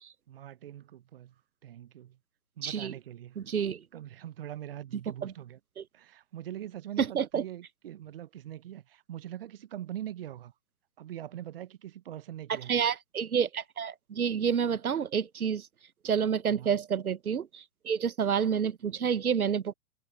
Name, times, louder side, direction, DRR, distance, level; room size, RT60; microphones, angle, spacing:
voice 1, 0.3-1.3 1.6-2.2 2.6-3.4 3.9-5.6 5.9-10.5 11.0-12.8 16.5-16.8, right 12 dB, 40° right, 1.0 m, -42 dB
voice 2, 2.6-2.9 3.4-3.8 5.2-5.3 5.8-5.9 7.0-7.4 12.5-15.7 16.0-19.7, right 7 dB, 75° right, 0.9 m, -29 dB
figure-of-eight pair, 130°, 44 cm